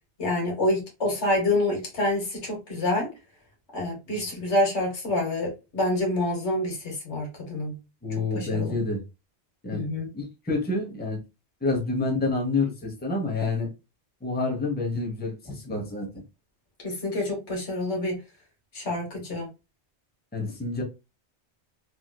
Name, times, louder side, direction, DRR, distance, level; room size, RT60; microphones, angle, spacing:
voice 1, 0.2-3.1 3.7-7.8 8.3-8.8 9.7-10.1 16.8-18.2 18.7-19.5, left 1 dB, 85° left, 1.5 m, -27 dB
voice 2, 8.0-9.0 9.6-9.8 10.1-11.2 11.6-13.7 14.2-16.1 20.3-20.8, left 3 dB, 10° left, 0.8 m, -28 dB
3.1 x 2.7 x 2.2 m
omnidirectional pair, 1.1 m